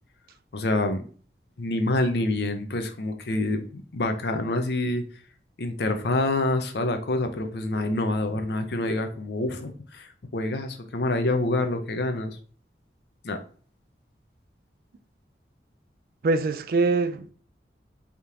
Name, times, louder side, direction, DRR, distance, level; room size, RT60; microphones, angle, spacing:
voice 1, 0.5-1.0 1.6-5.0 5.6-12.4 13.2-13.4, left 2 dB, 70° left, 0.6 m, -27 dB
voice 2, 16.2-17.3, right 3 dB, 55° right, 0.3 m, -23 dB
3.5 x 2.9 x 3.6 m
head